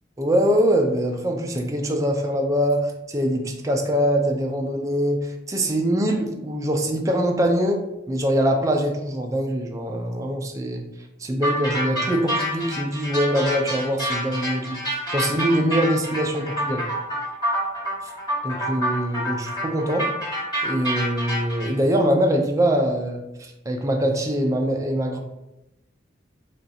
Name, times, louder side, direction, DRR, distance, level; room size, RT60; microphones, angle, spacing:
voice 1, 0.2-10.8 11.2-16.9 18.0-18.1 18.4-20.1 20.6-25.2, equal, 15° right, 2 dB, 0.4 m, -23 dB
sound 1, 11.4-21.7, equal, 20° left, 1.2 m, -27 dB
2.5 x 2.3 x 4.0 m, 0.93 s
head